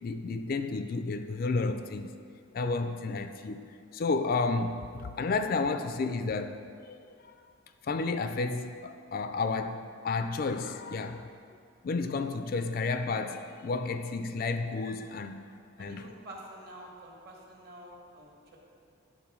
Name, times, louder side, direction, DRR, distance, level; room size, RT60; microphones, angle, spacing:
voice 1, 0.0-2.1 2.5-3.7 3.9-6.6 6.8-7.0 7.2-7.3 7.8-11.3 11.8-15.5 15.8-16.1, left 3 dB, 45° left, 0.3 m, -31 dB
voice 2, 15.8-18.6, right 1 dB, 50° right, 1.5 m, -48 dB
10.5 x 4.0 x 5.9 m
head